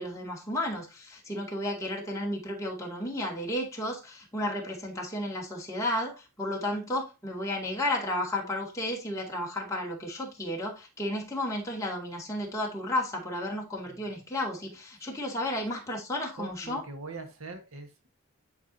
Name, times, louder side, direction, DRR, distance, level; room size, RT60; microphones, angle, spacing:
voice 1, 0.0-16.8, left 1 dB, 15° left, 2.2 m, -33 dB
voice 2, 16.4-18.1, right 3 dB, 70° right, 1.4 m, -42 dB
11.0 x 4.7 x 2.7 m
head